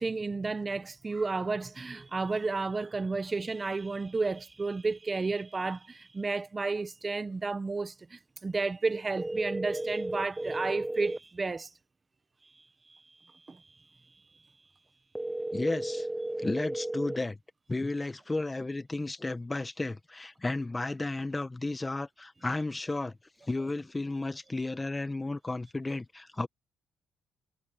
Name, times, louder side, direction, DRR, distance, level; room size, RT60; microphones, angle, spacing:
voice 1, 0.0-11.7 12.9-13.0 13.5-13.6, right 3 dB, 25° right, 1.2 m, -32 dB
sound 1, 9.2-11.2 15.1-17.2, right 1 dB, 10° right, 0.4 m, -34 dB
voice 2, 15.5-16.1 16.4-17.4 17.7-23.1 23.5-26.5, left 2 dB, 20° left, 1.3 m, -33 dB
cardioid pair, 90°, 0 cm